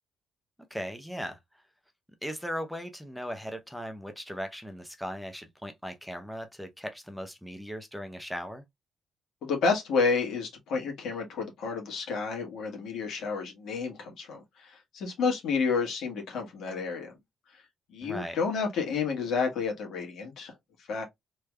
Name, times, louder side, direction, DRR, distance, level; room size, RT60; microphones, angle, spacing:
voice 1, 0.7-1.4 2.2-8.6 18.0-18.4, equal, ahead, 0.7 m, -38 dB
voice 2, 9.4-17.1 17.5-17.6 17.9-20.5 20.9-21.0, left 5 dB, 75° left, 1.7 m, -30 dB
3.2 x 3.2 x 2.3 m
cardioid pair, 90°, 0 cm